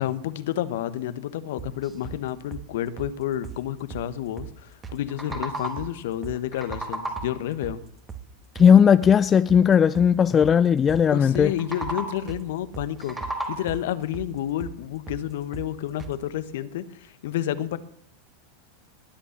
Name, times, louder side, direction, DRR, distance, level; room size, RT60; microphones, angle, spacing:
voice 1, 0.0-7.8 11.1-17.8, left 12 dB, 65° left, 1.2 m, -30 dB
sound 1, 1.6-2.2 2.5-2.7 3.0-3.1 3.4-3.6 3.9-4.1 4.4-4.5 4.8-5.0 5.3-5.9 6.2-6.4 6.7-6.9 7.2-7.3 7.6-7.8 8.1-8.2 8.5-8.7 9.0-9.6 9.9-10.1 10.4-10.6 10.9-11.0 11.3-11.5 11.8-12.0 12.3-12.4 12.7-13.4 13.7-13.8 14.1-14.3 14.6-14.8 15.1-15.2 15.5-15.7 16.0-16.2, right 8 dB, 25° right, 2.6 m, -38 dB
sound 2, 4.9-6.0 6.3-7.5 11.5-12.4 12.8-13.9, right 2 dB, 10° right, 4.0 m, -34 dB
voice 2, 8.6-11.5, left 7 dB, 25° left, 0.5 m, -17 dB
20.5 x 9.0 x 7.2 m
figure-of-eight pair, 90°, 0 cm